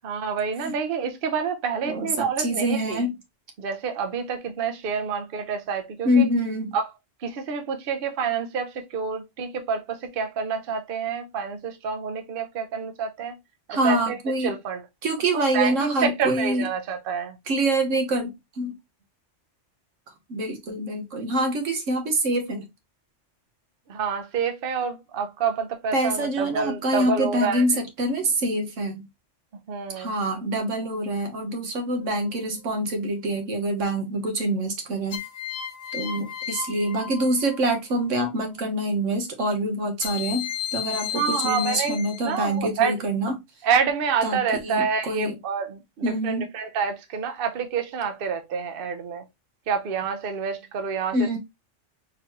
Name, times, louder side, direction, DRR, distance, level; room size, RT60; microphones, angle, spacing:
voice 1, 0.0-3.0 3.6-6.2 6.7-6.8 7.2-13.4 13.7-14.2 14.4-14.8 15.3-17.4 23.9-27.6 29.7-30.1 41.1-42.0 42.2-43.0 43.6-49.2 49.7-51.4, right 6 dB, 55° right, 0.8 m, -28 dB
voice 2, 1.8-3.1 6.0-6.8 13.7-14.5 15.0-16.7 17.5-18.8 20.3-22.6 25.9-29.1 30.0-35.2 35.9-43.4 44.2-45.3 46.0-46.5 51.1-51.4, right 1 dB, 90° right, 1.4 m, -25 dB
sound 1, 32.0-32.6 35.1-37.8 40.0-42.6, left 9 dB, 85° left, 1.0 m, -34 dB
4.0 x 3.0 x 2.9 m
omnidirectional pair, 1.2 m